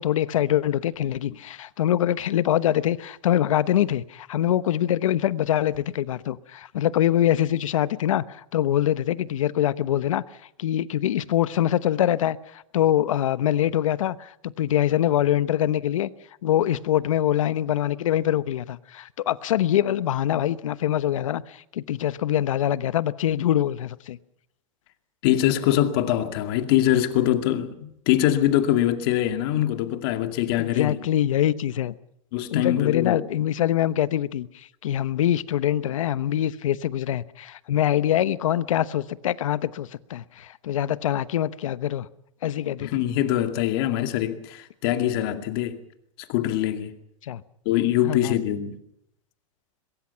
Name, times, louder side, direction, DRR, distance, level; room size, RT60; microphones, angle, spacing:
voice 1, 0.0-10.2 10.6-16.1 16.4-24.2 30.6-31.9 32.5-42.1 42.4-43.0 47.2-47.4 48.0-48.4, left 11 dB, 85° left, 1.1 m, -24 dB
voice 2, 25.2-31.0 32.3-33.2 42.8-45.8 46.3-47.0 47.7-48.8, left 12 dB, 45° left, 2.3 m, -23 dB
22.5 x 22.0 x 5.8 m
supercardioid pair, 155°, 17 cm